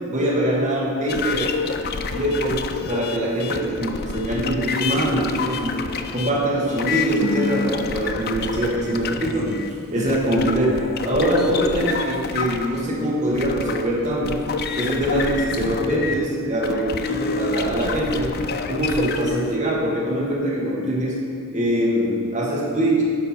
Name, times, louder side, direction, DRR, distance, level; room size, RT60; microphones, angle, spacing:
voice 1, 0.1-1.5 2.1-5.9 6.1-9.5 9.9-10.8 11.0-14.4 14.7-18.3 18.7-21.2 21.5-23.0, right 1 dB, 35° right, -6 dB, 1.5 m, -23 dB
sound 1, 1.1-16.2 16.6-19.6, left 4 dB, 45° left, 0.4 m, -28 dB
10.0 x 5.6 x 4.3 m, 2.3 s
head